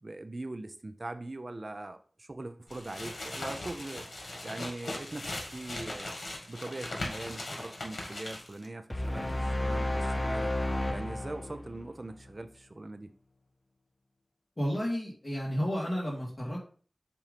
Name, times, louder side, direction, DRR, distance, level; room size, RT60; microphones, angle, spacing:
voice 1, 0.0-4.1 4.4-6.1 6.5-10.5 10.9-13.1, right 2 dB, 40° right, 9 dB, 0.5 m, -41 dB
sound 1, 2.7-8.7, left 1 dB, 75° left, 1.6 m, -39 dB
sound 2, 8.9-12.2, left 1 dB, 20° left, 0.6 m, -32 dB
voice 2, 14.6-16.6, equal, 40° left, -4 dB, 1.7 m, -32 dB
7.2 x 2.6 x 5.0 m, 0.41 s
wide cardioid pair, 80°, 0 cm